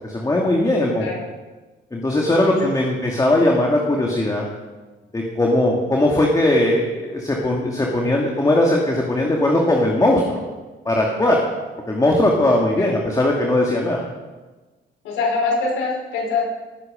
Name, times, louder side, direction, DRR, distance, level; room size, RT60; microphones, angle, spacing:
voice 1, 0.0-1.1 1.9-4.5 5.1-10.2 10.9-11.4 11.9-14.0, left 1 dB, 20° left, -1 dB, 2.4 m, -19 dB
voice 2, 15.0-16.4, left 4 dB, 85° left, -2 dB, 5.5 m, -23 dB
20.0 x 9.7 x 5.2 m, 1.2 s
cardioid pair, 90°, 20 cm